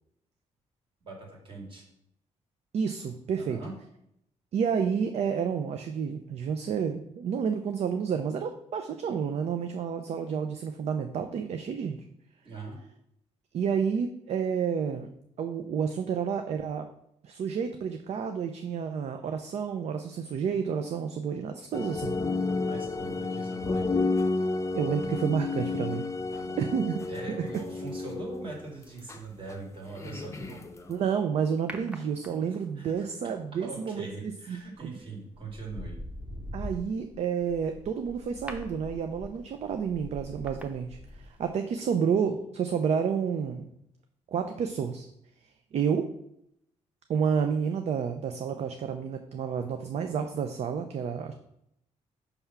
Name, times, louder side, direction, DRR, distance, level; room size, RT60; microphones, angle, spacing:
voice 1, 1.0-1.8 3.3-3.7 12.4-12.8 22.4-24.0 26.3-26.7 27.1-30.7 32.5-32.9 33.6-36.0, right 3 dB, 45° right, 0 dB, 2.1 m, -42 dB
voice 2, 2.7-3.6 4.5-12.0 13.5-15.1 15.4-16.9 17.2-22.2 24.7-26.0 26.6-27.0 30.9-34.9 36.5-43.6 44.3-45.1 45.7-46.1 47.1-51.3, right 7 dB, 60° right, 7 dB, 0.5 m, -30 dB
sound 1, 21.7-28.6 29.1-29.2 29.5-29.6 29.9-30.9, left 3 dB, 25° left, 0.6 m, -31 dB
sound 2, 31.7-32.7 34.6-34.9 35.3-41.5 41.8-41.9, left 1 dB, 10° right, 0.8 m, -42 dB
5.5 x 3.5 x 5.8 m, 0.76 s
cardioid pair, 110°, 13 cm